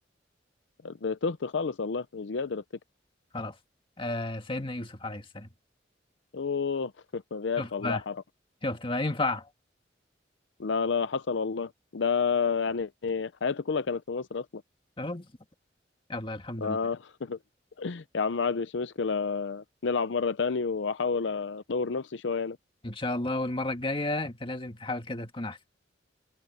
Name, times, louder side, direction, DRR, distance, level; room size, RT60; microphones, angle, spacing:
voice 1, 0.8-2.6 6.3-8.2 10.6-14.6 16.6-17.4 17.8-22.6, left 5 dB, 80° left, 0.6 m, -30 dB
voice 2, 4.0-5.5 7.6-8.0 8.6-9.5 15.0-15.3 16.1-16.8 22.8-25.6, left 2 dB, 30° left, 1.9 m, -32 dB
head